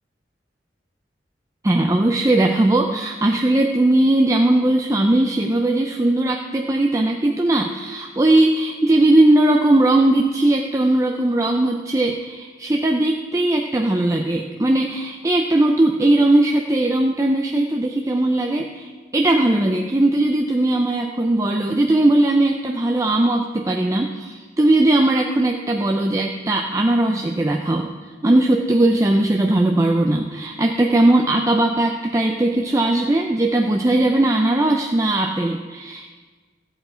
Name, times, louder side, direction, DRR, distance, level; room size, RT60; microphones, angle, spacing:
voice 1, 1.6-27.9 28.2-36.2, right 1 dB, 15° right, 2 dB, 0.4 m, -19 dB
14.0 x 7.9 x 4.3 m, 1.4 s
head